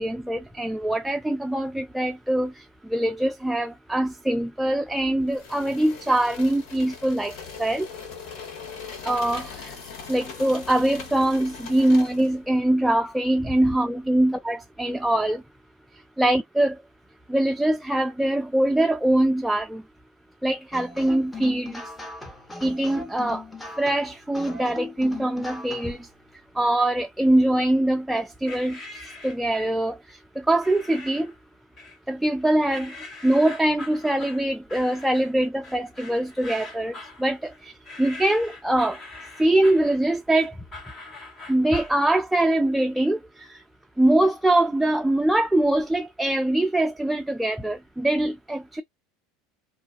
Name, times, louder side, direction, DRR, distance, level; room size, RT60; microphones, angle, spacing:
voice 1, 0.0-7.9 9.0-9.5 10.1-15.4 16.2-16.8 17.3-19.8 20.4-21.8 22.6-23.4 23.8-26.1 26.6-31.3 32.1-32.9 33.2-37.7 38.0-39.0 39.4-40.5 41.5-43.6 44.0-48.8, right 1 dB, 5° right, 0.3 m, -23 dB
sound 1, 5.3-12.4, left 5 dB, 60° left, 1.0 m, -40 dB
sound 2, 20.7-26.0, left 2 dB, 10° left, 0.9 m, -39 dB
sound 3, 28.5-29.8 30.6-31.4 31.8-32.4 32.7-42.0, left 2 dB, 35° left, 1.2 m, -42 dB
2.3 x 2.3 x 2.4 m
hypercardioid pair, 85°, 0 cm